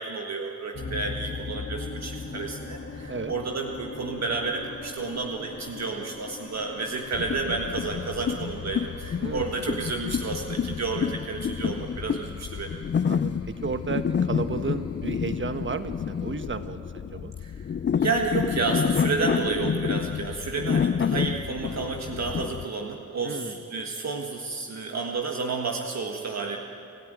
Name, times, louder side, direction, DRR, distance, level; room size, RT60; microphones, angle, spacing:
voice 1, 0.0-12.8 17.4-17.6 18.0-26.6, right 4 dB, 65° right, 2 dB, 1.6 m, -31 dB
sound 1, 0.7-16.5, left 4 dB, 55° left, 2.0 m, -41 dB
sound 2, 7.1-22.6, left 7 dB, 40° left, 0.5 m, -29 dB
voice 2, 9.2-9.6 13.0-17.3 23.2-23.6, right 4 dB, 40° right, 10 dB, 1.3 m, -33 dB
28.0 x 13.5 x 9.2 m, 2.8 s
cardioid pair, 75°, 29 cm